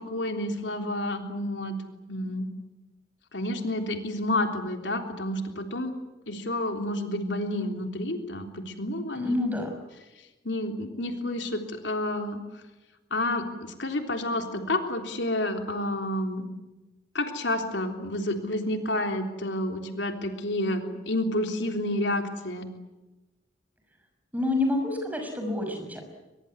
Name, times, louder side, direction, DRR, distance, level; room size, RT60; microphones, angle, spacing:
voice 1, 0.0-1.8 2.1-2.5 3.3-5.9 6.3-9.5 10.4-12.4 13.1-16.5 17.1-22.7, left 1 dB, 90° left, 5 dB, 3.5 m, -30 dB
voice 2, 9.1-9.7 24.3-26.0, left 2 dB, 10° right, 5 dB, 6.0 m, -28 dB
23.0 x 22.5 x 9.7 m, 1.1 s
head